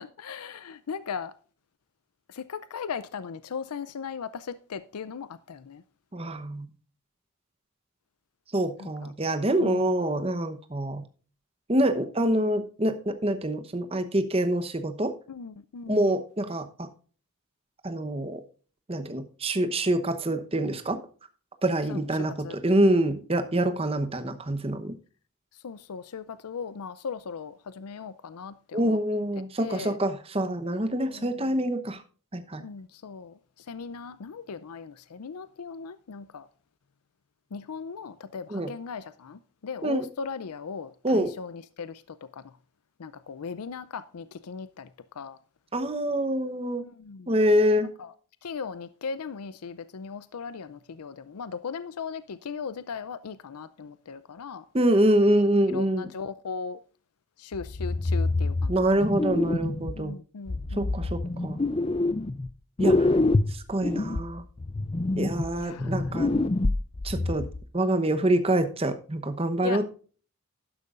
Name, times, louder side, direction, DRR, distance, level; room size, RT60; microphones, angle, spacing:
voice 1, 0.0-1.3 2.3-5.8 8.8-9.1 9.6-10.0 15.3-16.1 21.9-22.9 25.5-29.0 29.6-30.0 31.0-31.6 32.6-36.5 37.5-42.5 43.0-44.9 45.1-45.4 46.9-47.4 48.0-48.1 48.4-54.7 55.7-56.8 57.4-59.1 59.9-61.0 63.2-63.3 63.8-64.0 65.6-66.2 69.6-69.8, left 5 dB, 90° left, 0.5 m, -38 dB
voice 2, 6.1-6.7 8.5-11.0 11.7-15.1 15.9-16.9 17.8-18.4 18.9-21.0 21.6-22.3 22.6-24.9 28.7-32.0 32.3-32.6 38.5-38.7 39.8-40.0 41.0-41.3 45.7-46.8 47.3-47.9 54.7-56.1 58.7-60.1 60.7-61.6 62.8-63.1 63.5-64.4 65.2-66.3 67.0-67.5 67.7-69.9, right 1 dB, 25° right, 0.9 m, -25 dB
sound 1, 57.5-60.0 60.5-62.5 62.8-67.6, left 2 dB, 25° left, 0.4 m, -26 dB
12.0 x 10.5 x 2.5 m
head